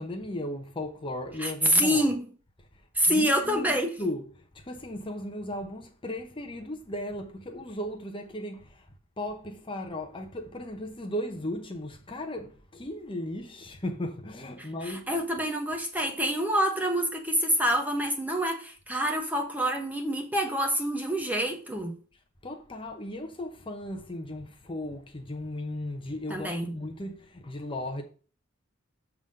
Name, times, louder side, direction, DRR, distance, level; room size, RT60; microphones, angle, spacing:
voice 1, 0.0-2.1 3.1-3.7 4.0-8.9 9.2-15.1 22.4-28.0, left 1 dB, 25° left, 0.8 m, -36 dB
voice 2, 1.4-2.2 2.9-3.9 14.6-21.9 26.3-26.7, equal, 10° right, 1.0 m, -27 dB
7.2 x 3.6 x 6.3 m
head